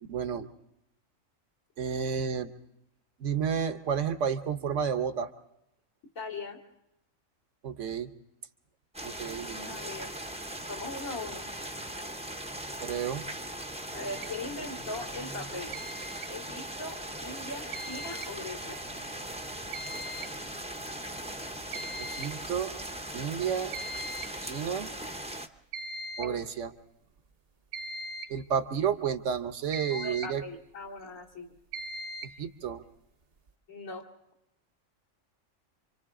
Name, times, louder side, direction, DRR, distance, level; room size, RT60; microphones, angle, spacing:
voice 1, 0.1-0.5 1.8-2.5 3.2-5.3 7.6-8.1 9.0-9.8 12.8-13.2 22.0-22.7 23.1-23.7 24.4-24.9 26.2-26.7 28.3-30.4 32.2-32.8, right 7 dB, 70° right, 9 dB, 1.2 m, -31 dB
voice 2, 6.1-6.6 9.6-10.2 10.7-11.5 13.9-15.8 16.3-18.8 26.2-26.4 29.8-31.5 33.7-34.1, left 2 dB, 85° left, -4 dB, 2.9 m, -40 dB
sound 1, 8.9-25.5, right 1 dB, 5° right, 0.6 m, -39 dB
sound 2, 14.1-14.3 15.7-16.3 17.7-18.3 19.7-20.3 20.6-20.7 21.3-21.4 21.7-22.3 23.7-24.3 25.7-26.4 27.7-28.4 29.7-30.4 31.7-32.4, right 2 dB, 50° right, 1.0 m, -39 dB
28.0 x 25.0 x 3.7 m, 0.84 s
omnidirectional pair, 1.4 m